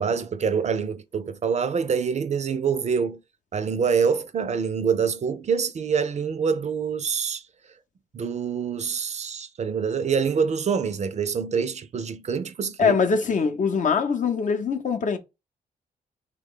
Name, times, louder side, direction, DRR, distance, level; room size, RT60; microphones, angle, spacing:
voice 1, 0.0-3.2 3.5-7.4 8.1-13.0, right 6 dB, 45° right, 0.4 m, -25 dB
voice 2, 12.8-15.2, left 5 dB, 50° left, 0.7 m, -23 dB
3.1 x 2.2 x 3.6 m
supercardioid pair, 60°, 17 cm